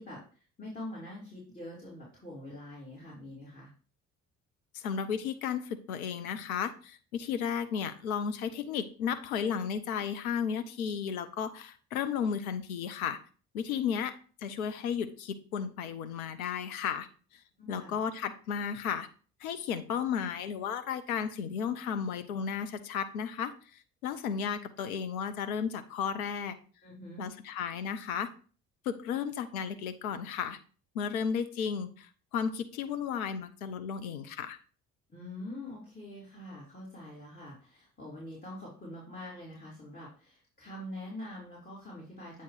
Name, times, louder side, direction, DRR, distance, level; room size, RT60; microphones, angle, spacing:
voice 1, 0.0-3.7 17.6-17.9 26.8-27.3 35.1-42.4, left 1 dB, 20° left, -5 dB, 2.9 m, -44 dB
voice 2, 4.7-13.2 13.5-14.1 14.4-17.1 17.7-19.1 19.4-23.5 24.0-26.5 27.2-28.3 28.8-30.6 30.9-34.6, left 7 dB, 85° left, 10 dB, 0.7 m, -34 dB
8.3 x 2.9 x 4.8 m, 0.38 s
hypercardioid pair, 50°, 42 cm